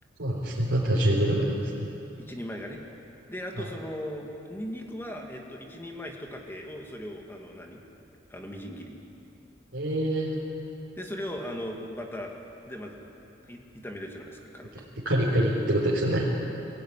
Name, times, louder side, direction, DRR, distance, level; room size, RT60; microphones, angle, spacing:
voice 1, 0.2-1.6 3.6-3.7 9.7-10.3 15.0-16.2, right 1 dB, 85° right, -7 dB, 4.1 m, -25 dB
voice 2, 2.2-2.8 3.3-7.8 8.3-9.0 11.0-12.3 12.7-13.0 13.5-14.9, equal, 10° left, 1 dB, 2.2 m, -38 dB
23.5 x 16.0 x 9.9 m, 3.0 s
head